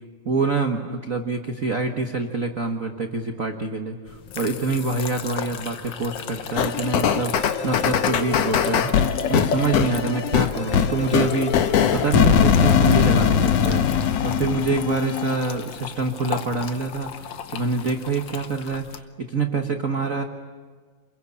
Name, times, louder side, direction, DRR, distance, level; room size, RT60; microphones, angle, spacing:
voice 1, 0.2-8.9 9.3-18.9 19.2-20.2, right 3 dB, 75° right, 4 dB, 0.7 m, -26 dB
sound 1, 4.1-19.0, left 7 dB, 85° left, 1.0 m, -34 dB
sound 2, 6.6-15.3, left 8 dB, 65° left, 1.9 m, -21 dB
28.5 x 22.0 x 8.6 m, 1.5 s
omnidirectional pair, 3.7 m